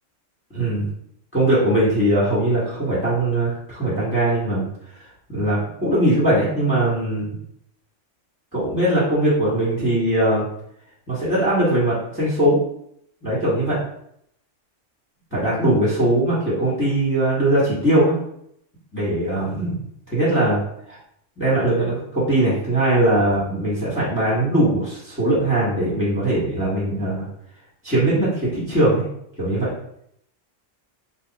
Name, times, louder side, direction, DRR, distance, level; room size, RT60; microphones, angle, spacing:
voice 1, 0.5-0.9 1.3-4.7 4.9-5.0 5.3-7.3 8.5-10.5 11.1-12.6 13.2-13.8 15.3-18.2 18.9-20.6 20.9-21.0 21.4-27.3 27.8-29.0 29.4-29.7, right 1 dB, 10° left, -8 dB, 1.3 m, -20 dB
3.4 x 2.3 x 4.1 m, 0.73 s
omnidirectional pair, 1.3 m